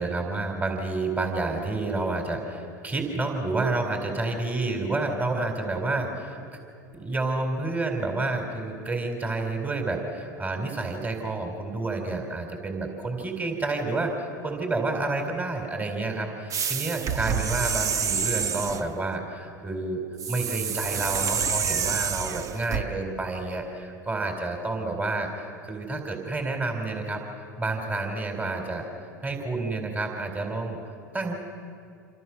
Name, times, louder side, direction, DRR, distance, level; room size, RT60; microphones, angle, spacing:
voice 1, 0.0-6.4 6.9-20.0 20.3-28.9 29.2-30.8 31.1-31.3, right 2 dB, 15° right, 3 dB, 4.3 m, -29 dB
sound 1, 16.5-18.9 20.2-22.8, right 7 dB, 35° right, 1.2 m, -28 dB
28.0 x 27.0 x 6.2 m, 2.4 s
hypercardioid pair, 80°, 10 cm